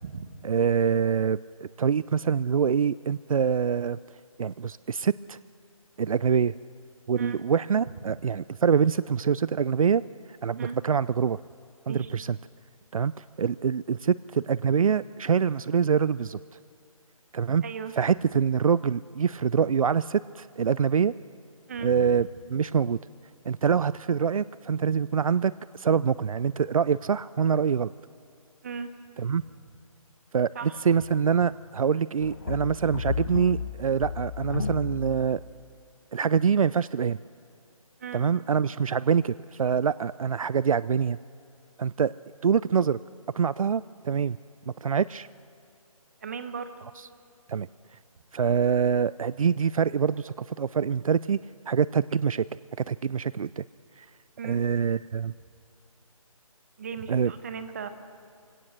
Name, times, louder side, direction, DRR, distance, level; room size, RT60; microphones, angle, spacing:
voice 1, 0.4-1.4 1.8-4.0 4.4-5.4 6.0-6.5 7.1-10.0 10.4-11.4 11.9-12.4 12.9-16.4 17.3-17.6 18.0-21.2 21.8-23.0 23.5-27.9 29.2-29.4 30.3-30.5 30.8-35.4 36.1-37.2 38.1-41.2 41.8-42.1 42.4-43.0 43.3-44.4 44.7-45.3 47.5-47.7 48.3-51.4 51.7-52.5 52.9-53.6 54.0-54.1 54.4-55.3 57.1-57.3, right 7 dB, 70° right, 18 dB, 0.4 m, -25 dB
voice 2, 17.6-17.9 21.7-22.2 28.6-28.9 29.2-29.3 30.5-30.8 38.0-38.3 46.2-46.7 54.4-54.6 56.8-57.9, right 6 dB, 25° right, 10 dB, 1.0 m, -37 dB
sound 1, 32.2-35.6, left 5 dB, 35° left, 0.8 m, -33 dB
23.0 x 17.5 x 6.5 m, 2.5 s
hypercardioid pair, 170°, 19 cm